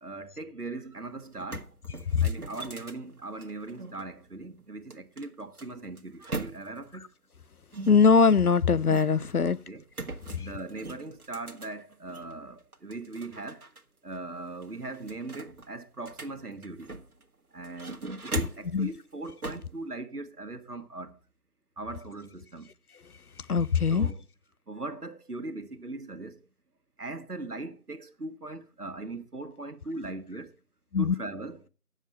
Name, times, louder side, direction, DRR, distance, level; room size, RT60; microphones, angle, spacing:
voice 1, 0.0-1.8 2.2-7.1 9.4-9.8 10.4-13.7 14.0-16.9 17.5-21.2 21.8-22.7 23.9-24.3 24.7-26.4 27.0-30.6 31.0-31.7, right 2 dB, 85° right, 1.5 m, -40 dB
sound 1, 0.9-1.0 1.3-4.0 4.9-6.9 7.7-9.3 9.9-12.3 12.7-13.8 14.1-14.2 14.6-17.2 17.6-18.8 19.4-19.7, right 3 dB, 70° right, 1.5 m, -41 dB
voice 2, 7.9-9.6 18.7-18.9 23.5-24.1 30.9-31.1, left 5 dB, 75° left, 0.7 m, -21 dB
9.3 x 7.2 x 5.7 m
figure-of-eight pair, 175°, 45 cm